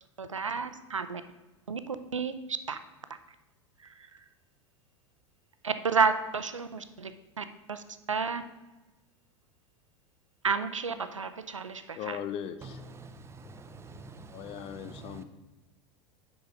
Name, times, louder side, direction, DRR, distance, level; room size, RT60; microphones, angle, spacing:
voice 1, 0.2-1.2 1.7-2.8 3.8-4.1 5.6-7.1 7.4-8.4 10.4-12.2, right 5 dB, 90° right, 0.5 m, -31 dB
voice 2, 12.0-12.8 14.3-15.2, left 9 dB, 35° left, 0.5 m, -38 dB
voice 3, 13.0-15.2, right 3 dB, 15° right, 0.6 m, -47 dB
6.3 x 4.8 x 5.1 m
figure-of-eight pair, 85°, 16 cm